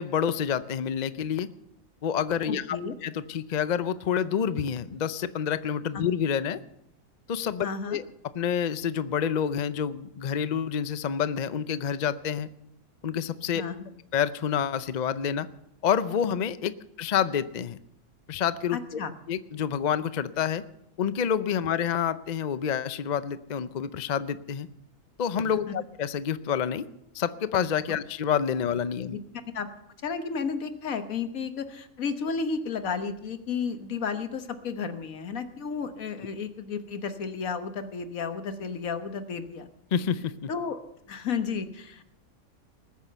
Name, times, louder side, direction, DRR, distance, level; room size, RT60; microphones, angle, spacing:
voice 1, 0.0-1.5 2.0-6.6 7.3-8.0 8.3-12.5 13.0-13.6 14.1-15.5 15.8-16.7 17.0-17.8 18.3-19.0 19.3-20.6 21.0-24.7 25.2-26.8 27.1-29.2 39.9-40.5, left 8 dB, 50° left, 14 dB, 0.5 m, -28 dB
voice 2, 2.5-2.9 5.9-6.0 7.6-8.0 13.5-13.9 18.7-19.1 25.4-25.7 29.1-29.2 29.5-29.7 30.0-39.7 40.5-40.8 41.1-42.1, left 5 dB, 70° left, 9 dB, 1.6 m, -32 dB
20.0 x 9.4 x 6.8 m, 0.78 s
omnidirectional pair, 1.5 m